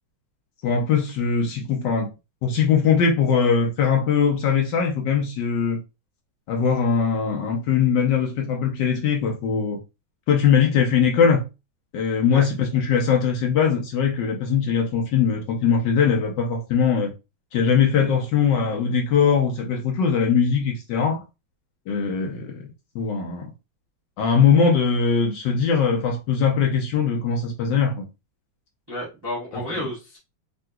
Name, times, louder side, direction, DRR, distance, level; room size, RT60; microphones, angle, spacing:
voice 1, 0.6-2.1 2.4-5.8 6.5-9.8 10.3-11.5 11.9-17.1 17.5-21.2 21.9-22.7 22.9-23.5 24.2-28.1, left 6 dB, 70° left, 1.2 m, -21 dB
voice 2, 28.9-30.2, left 1 dB, 20° right, 0.6 m, -31 dB
3.7 x 2.5 x 2.2 m
omnidirectional pair, 2.2 m